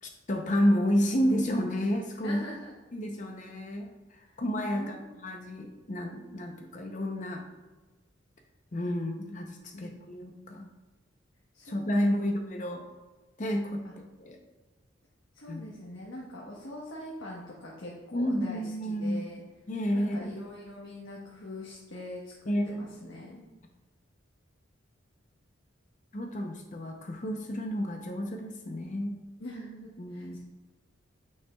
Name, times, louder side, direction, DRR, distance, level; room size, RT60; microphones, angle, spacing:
voice 1, 0.0-2.4 2.9-7.4 8.7-10.7 11.7-12.8 13.4-14.4 15.5-15.6 18.1-19.2 19.7-20.3 22.5-22.9 26.1-29.1 30.0-30.4, equal, 40° left, 3 dB, 0.7 m, -30 dB
voice 2, 2.2-2.7 4.3-4.4 4.7-5.2 9.7-10.0 11.5-12.2 13.8-13.9 15.3-19.4 19.9-23.4 29.4-30.4, left 1 dB, 80° left, -4 dB, 1.2 m, -43 dB
9.1 x 5.5 x 2.3 m, 1.2 s
head